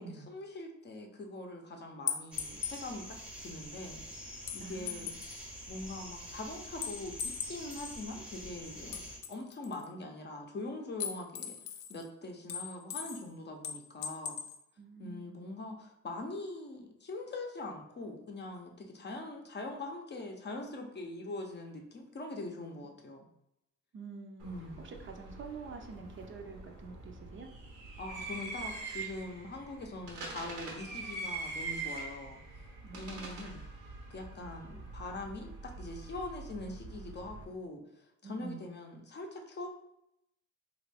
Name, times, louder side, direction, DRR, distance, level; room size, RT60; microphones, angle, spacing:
voice 1, 0.0-5.1 5.7-11.6 11.9-14.4 15.0-23.2 24.4-24.8 28.0-32.4 32.9-33.6 34.1-37.8 38.2-39.7, left 2 dB, 35° left, 2 dB, 0.6 m, -43 dB
sound 1, 2.1-2.8 4.5-5.4 6.8-8.0 8.9-9.9 11.0-12.0 12.5-13.3 13.6-14.6, left 8 dB, 85° left, 0.5 m, -39 dB
sound 2, 2.3-9.2, equal, 5° right, 0.7 m, -47 dB
voice 2, 4.6-5.1 14.8-15.4 23.9-24.5 24.8-27.5 32.8-33.5 38.2-38.7, right 4 dB, 40° right, 4 dB, 0.5 m, -47 dB
sound 3, 24.4-37.4, right 3 dB, 90° right, 0.9 m, -44 dB
3.3 x 2.5 x 3.3 m, 0.81 s
cardioid pair, 90°, 30 cm